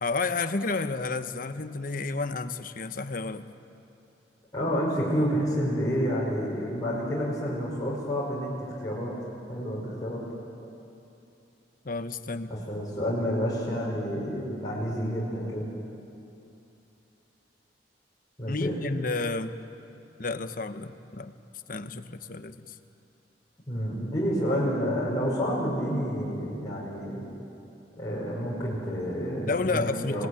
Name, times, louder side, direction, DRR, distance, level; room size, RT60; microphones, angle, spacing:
voice 1, 0.0-3.4 11.8-12.5 18.5-19.5 20.2-21.3 21.7-22.7 29.5-30.3, left 3 dB, 50° left, 10 dB, 1.1 m, -31 dB
voice 2, 4.5-9.1 9.5-10.2 12.7-15.7 18.4-18.8 23.7-27.2 28.0-30.3, equal, 20° left, -6 dB, 5.4 m, -29 dB
27.5 x 18.5 x 9.8 m, 2.8 s
head